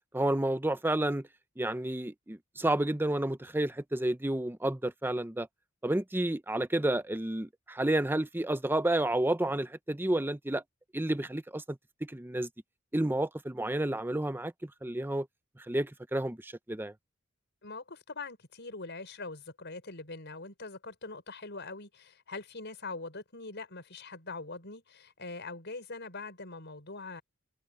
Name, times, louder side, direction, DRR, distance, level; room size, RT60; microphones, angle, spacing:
voice 1, 0.1-1.3 1.6-5.5 5.8-10.6 10.9-12.5 12.9-15.3 15.7-16.9, right 1 dB, 10° right, 0.7 m, -30 dB
voice 2, 17.6-27.2, left 3 dB, 60° left, 6.2 m, -43 dB
head